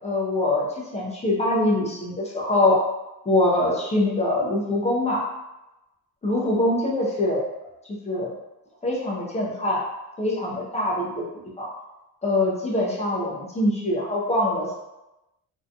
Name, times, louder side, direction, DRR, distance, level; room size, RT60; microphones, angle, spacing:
voice 1, 0.0-2.8 3.3-5.2 6.2-7.4 8.0-8.3 8.8-9.9 10.2-11.2 11.6-11.7 12.2-14.7, left 1 dB, 20° left, -4 dB, 0.4 m, -23 dB
2.6 x 2.2 x 2.6 m, 0.98 s
wide cardioid pair, 180°, 37 cm